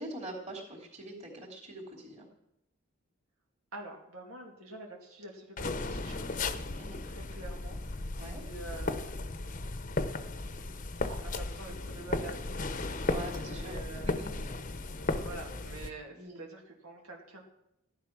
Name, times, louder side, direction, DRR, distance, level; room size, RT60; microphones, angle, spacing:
voice 1, 0.0-2.3 6.8-7.0 8.2-8.4 13.1-14.6 15.1-15.3 16.1-16.5, right 1 dB, 30° right, -1 dB, 3.2 m, -44 dB
voice 2, 3.7-6.4 7.0-8.1 8.4-9.2 11.0-12.8 13.5-14.2 15.2-17.4, right 2 dB, 80° right, 0 dB, 2.5 m, -46 dB
sound 1, 5.6-15.9, left 2 dB, 35° left, 0.8 m, -35 dB
14.5 x 11.0 x 6.1 m, 0.82 s
head